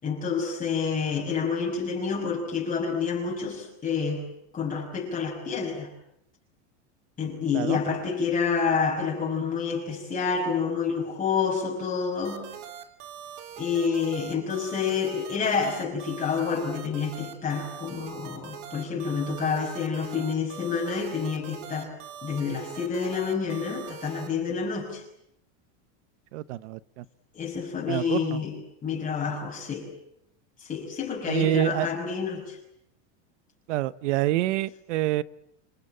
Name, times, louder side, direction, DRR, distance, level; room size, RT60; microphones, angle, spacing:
voice 1, 0.0-4.2 4.5-5.9 7.2-12.5 13.6-21.9 22.2-25.0 27.3-28.6 28.8-29.9 30.6-32.6, left 6 dB, 25° left, -2 dB, 5.9 m, -28 dB
sound 1, 12.2-24.3, right 9 dB, 55° right, 3.5 m, -42 dB
voice 2, 26.3-27.0 27.9-28.4 31.3-31.9 33.7-35.2, right 15 dB, 80° right, 18 dB, 1.0 m, -27 dB
28.0 x 22.0 x 8.9 m, 0.79 s
supercardioid pair, 150°, 36 cm